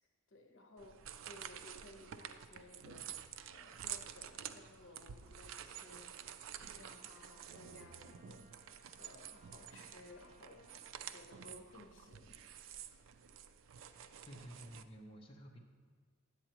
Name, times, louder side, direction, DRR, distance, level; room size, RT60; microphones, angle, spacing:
voice 1, 0.3-3.1 3.4-6.2 6.6-12.4, left 2 dB, 70° left, 4 dB, 0.9 m, -58 dB
sound 1, 0.8-14.8, right 9 dB, 70° right, 0.4 m, -50 dB
Trumpet, 6.5-11.2, right 3 dB, 45° right, 1.2 m, -68 dB
voice 2, 14.2-15.6, equal, 30° left, 0 dB, 0.7 m, -52 dB
9.9 x 7.8 x 3.0 m, 1.5 s
head